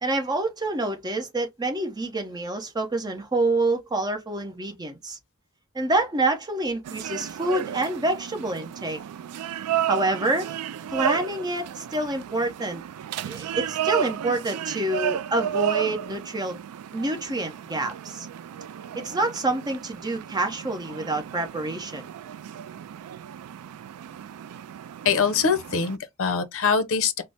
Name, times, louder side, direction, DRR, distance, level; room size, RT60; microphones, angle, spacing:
voice 1, 0.0-5.2 5.7-9.0 9.9-10.5 10.9-12.8 13.2-16.6 16.9-18.3 18.9-22.1, right 2 dB, 20° right, 0.8 m, -27 dB
sound 1, 6.8-26.0, right 10 dB, 85° right, 0.3 m, -33 dB
voice 2, 25.0-27.2, left 6 dB, 65° left, 0.6 m, -23 dB
3.9 x 2.0 x 3.2 m
head